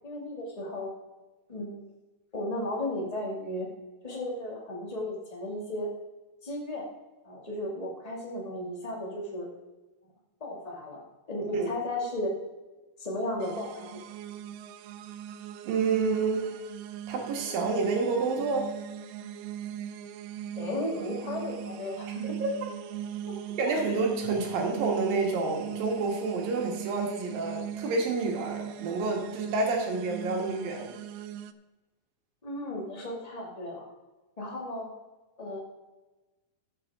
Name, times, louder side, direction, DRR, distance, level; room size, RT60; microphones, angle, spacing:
voice 1, 0.0-0.9 1.5-1.8 2.3-3.7 4.0-5.9 6.4-6.9 7.2-9.5 10.4-11.0 11.3-12.4 13.0-14.0 20.5-22.4 23.3-23.4 32.4-33.8 34.4-34.9 35.4-35.6, left 1 dB, 15° left, -2 dB, 1.4 m, -34 dB
sound 1, 13.4-31.5, right 10 dB, 90° right, 2.5 m, -39 dB
voice 2, 15.7-16.6 17.1-18.7 22.4-22.7 23.6-31.0, right 3 dB, 70° right, 1 dB, 3.4 m, -29 dB
13.0 x 8.0 x 3.6 m, 1.1 s
omnidirectional pair, 4.3 m